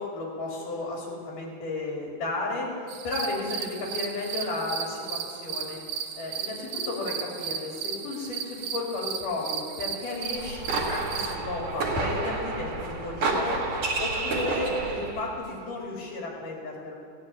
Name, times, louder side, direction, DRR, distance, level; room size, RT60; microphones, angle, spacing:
voice 1, 0.0-2.7 3.0-5.8 6.2-13.6 14.0-16.9, left 2 dB, 80° left, -3 dB, 3.7 m, -33 dB
sound 1, 2.9-11.3, right 7 dB, 70° right, 2.0 m, -35 dB
sound 2, 10.3-15.3, right 3 dB, 45° right, 2.7 m, -30 dB
16.5 x 6.3 x 9.0 m, 2.3 s
omnidirectional pair, 3.6 m